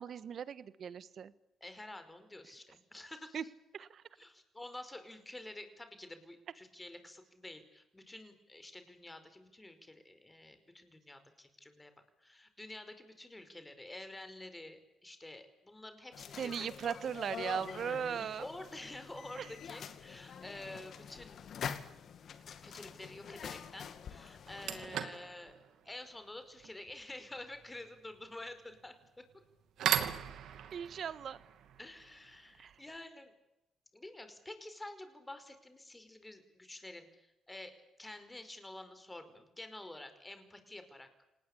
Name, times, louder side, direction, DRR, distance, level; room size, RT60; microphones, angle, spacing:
voice 1, 0.0-1.3 3.3-3.4 3.7-4.0 16.4-18.4 19.4-19.5 30.7-31.4 32.6-32.7, right 8 dB, 60° right, 16 dB, 1.4 m, -38 dB
voice 2, 1.6-3.5 4.2-11.9 12.2-16.7 18.4-21.4 22.6-25.5 25.9-29.2 31.8-33.3 33.9-41.1, left 1 dB, 15° left, 9 dB, 5.1 m, -49 dB
sound 1, 16.1-24.9, left 7 dB, 60° left, 2.2 m, -46 dB
sound 2, 21.3-21.6 23.6-23.7 24.3-33.0, right 9 dB, 75° right, 2.7 m, -40 dB
27.5 x 19.5 x 8.6 m, 0.88 s
cardioid pair, 90°, 0 cm